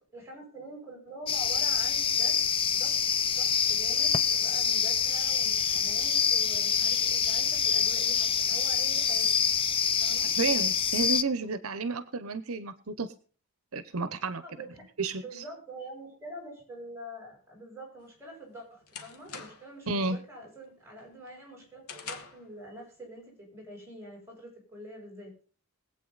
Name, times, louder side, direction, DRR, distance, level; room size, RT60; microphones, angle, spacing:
voice 1, 0.1-2.4 2.7-3.0 3.3-9.3 10.0-10.3 14.4-14.9 15.2-25.3, right 1 dB, 10° right, -1 dB, 7.9 m, -45 dB
sound 1, 1.3-11.2, left 7 dB, 25° left, 0.5 m, -26 dB
voice 2, 10.4-13.1 13.7-14.4 15.0-15.4 19.9-20.2, right 4 dB, 75° right, 13 dB, 0.9 m, -31 dB
sound 2, 18.0-19.8 20.2-20.6 21.0-22.5, left 5 dB, 85° left, 1.7 m, -45 dB
21.5 x 8.5 x 4.0 m, 0.41 s
head